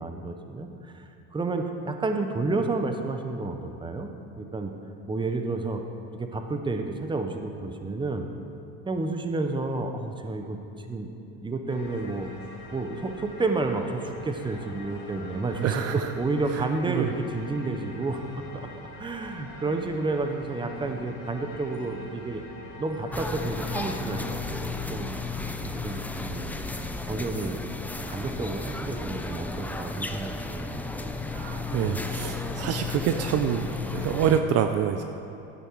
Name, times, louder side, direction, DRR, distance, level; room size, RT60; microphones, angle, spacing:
voice 1, 0.0-4.7 5.1-5.8 6.1-8.3 8.8-11.1 11.4-12.3 12.7-18.4 19.0-22.4 22.8-25.1 25.8-26.6 27.0-27.6 28.1-30.7, right 3 dB, 15° right, 5 dB, 1.0 m, -30 dB
sound 1, 11.7-24.2, left 1 dB, 85° left, 3.0 m, -44 dB
voice 2, 15.6-15.9 16.6-17.1 31.3-35.0, right 9 dB, 50° right, 7 dB, 0.6 m, -26 dB
sound 2, 23.1-34.4, left 3 dB, 5° left, 0.6 m, -33 dB
12.5 x 9.1 x 4.7 m, 2.8 s
supercardioid pair, 105°, 33 cm